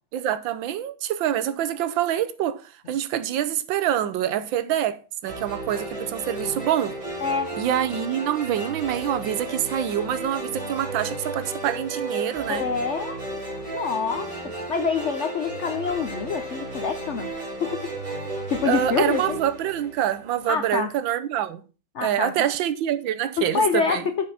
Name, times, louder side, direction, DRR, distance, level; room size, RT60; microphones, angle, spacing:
voice 1, 0.1-7.0 7.6-12.7 18.7-21.6 22.0-24.0, right 10 dB, 75° right, 1.4 m, -26 dB
sound 1, 5.2-20.5, right 2 dB, 15° right, 3.2 m, -34 dB
voice 2, 12.5-13.2 13.7-14.3 14.7-17.3 17.6-17.8 18.5-19.4 20.5-20.9 21.9-22.5 23.4-24.0, left 5 dB, 70° left, 0.6 m, -26 dB
7.5 x 5.2 x 5.6 m
omnidirectional pair, 2.2 m